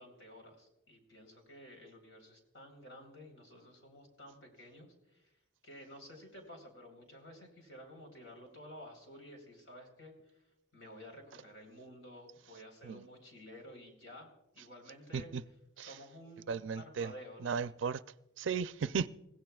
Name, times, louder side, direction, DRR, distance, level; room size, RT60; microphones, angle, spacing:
voice 1, 0.0-5.3 5.6-10.4 10.7-15.3 15.8-17.6, equal, 75° left, 4.0 m, -53 dB
voice 2, 16.5-17.1 17.4-18.0 18.4-19.1, right 6 dB, 70° right, 0.4 m, -35 dB
28.0 x 16.0 x 2.4 m
head